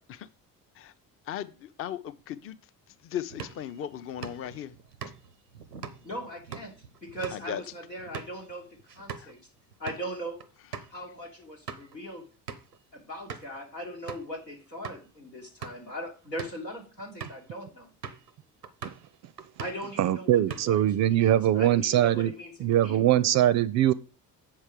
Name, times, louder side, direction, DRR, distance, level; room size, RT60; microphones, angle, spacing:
voice 1, 3.1-4.7 7.3-7.6, left 10 dB, 30° left, 0.5 m, -36 dB
sound 1, 3.3-9.4 9.7-10.0 10.4-10.5 10.7-10.9 11.4-12.0 12.5-12.8 13.3-13.6 14.1-14.3 14.8-15.0 15.5-15.9 16.3-16.6 17.2-17.5 18.0-18.3 18.6-19.1 19.4-19.9 20.3-20.9, right 6 dB, 90° right, 0.6 m, -42 dB
voice 2, 6.0-6.7 7.0-8.7 8.9-9.4 9.8-10.4 10.9-12.2 12.9-17.9 19.6-23.3, equal, 90° left, 1.4 m, -39 dB
voice 3, 20.0-22.3 22.6-23.9, right 12 dB, 40° right, 0.4 m, -22 dB
7.3 x 5.4 x 4.9 m
figure-of-eight pair, 45°, 47 cm